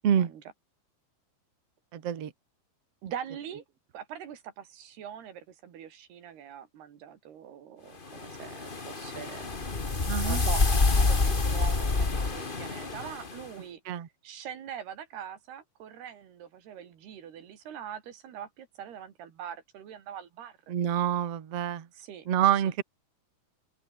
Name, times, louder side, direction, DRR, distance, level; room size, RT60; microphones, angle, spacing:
voice 1, 1.9-2.3 10.1-10.4 13.9-14.1 20.7-21.9 22.3-22.8, right 9 dB, 45° right, 2.6 m, -27 dB
voice 2, 3.0-3.6 3.9-9.5 10.2-13.8 14.2-20.6 21.9-22.3, right 9 dB, 85° right, 4.7 m, -43 dB
sound 1, 8.1-13.4, left 3 dB, 55° left, 0.5 m, -27 dB
open air
omnidirectional pair, 4.5 m